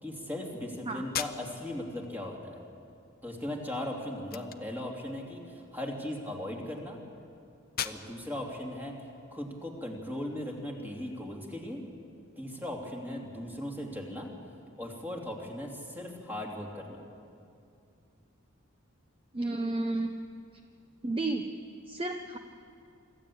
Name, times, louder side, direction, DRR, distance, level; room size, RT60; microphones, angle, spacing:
voice 1, 0.0-2.6 3.2-7.0 7.8-8.9 9.3-11.8 12.4-14.3 14.8-17.0, left 1 dB, 10° right, -1 dB, 2.8 m, -38 dB
sound 1, 1.1-10.0, left 9 dB, 45° left, 0.8 m, -43 dB
voice 2, 19.3-20.1 21.0-21.4 21.9-22.4, right 2 dB, 25° right, 5 dB, 0.8 m, -31 dB
25.5 x 14.0 x 8.6 m, 2.5 s
head